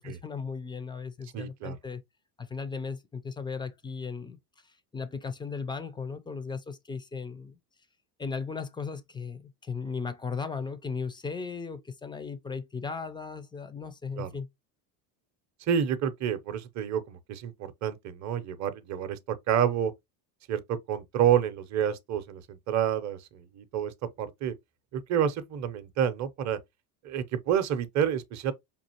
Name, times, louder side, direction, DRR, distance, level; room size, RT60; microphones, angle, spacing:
voice 1, 0.0-2.0 2.4-4.4 4.9-7.6 8.2-14.5, left 5 dB, 10° left, 0.4 m, -36 dB
voice 2, 1.3-1.8 14.2-14.3 15.7-19.9 20.5-23.9 24.2-24.5 24.9-26.6 27.0-28.5, right 9 dB, 35° right, 0.7 m, -29 dB
5.3 x 2.5 x 2.8 m
supercardioid pair, 95°, 49 cm